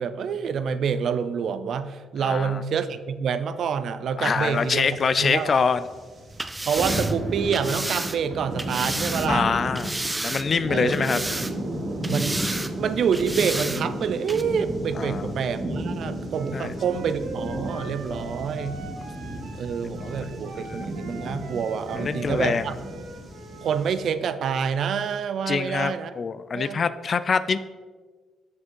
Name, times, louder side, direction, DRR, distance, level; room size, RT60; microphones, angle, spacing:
voice 1, 0.0-4.9 5.2-5.5 6.7-9.5 10.7-11.2 12.0-12.4 12.8-18.8 19.6-22.8 23.6-26.2 26.5-26.8, right 7 dB, 65° right, 12 dB, 0.5 m, -27 dB
voice 2, 2.2-2.6 4.2-5.8 9.3-9.9 10.2-11.2 14.9-15.4 16.5-16.7 19.8-20.1 20.5-20.8 21.9-22.7 25.5-27.6, left 5 dB, 45° left, 14 dB, 0.4 m, -25 dB
sound 1, 4.3-24.0, right 1 dB, 40° right, 2.2 m, -33 dB
sound 2, 6.3-9.3 9.7-10.6 10.9-11.7 12.0-12.7 13.1-13.8 14.3-14.4, right 2 dB, 15° right, 0.5 m, -31 dB
Wind instrument woodwind instrument, 16.3-23.9, right 2 dB, 85° right, 1.4 m, -41 dB
7.5 x 6.1 x 4.6 m, 1.4 s
cardioid pair, 90°, 0 cm